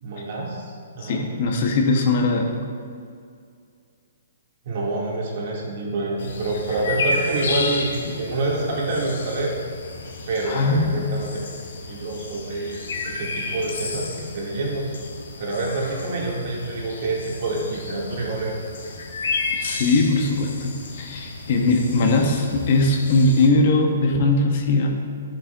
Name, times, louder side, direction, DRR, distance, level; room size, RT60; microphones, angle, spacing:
voice 1, 0.0-1.2 4.7-9.5 10.3-11.5 11.8-14.9 15.4-18.6, right 2 dB, 45° right, -3 dB, 1.7 m, -27 dB
voice 2, 1.0-2.6 10.5-11.1 19.6-25.0, left 2 dB, 40° left, 3 dB, 0.7 m, -20 dB
sound 1, 6.2-23.5, left 3 dB, 70° left, 1.0 m, -32 dB
10.5 x 7.3 x 2.3 m, 2.3 s
hypercardioid pair, 170°, 0 cm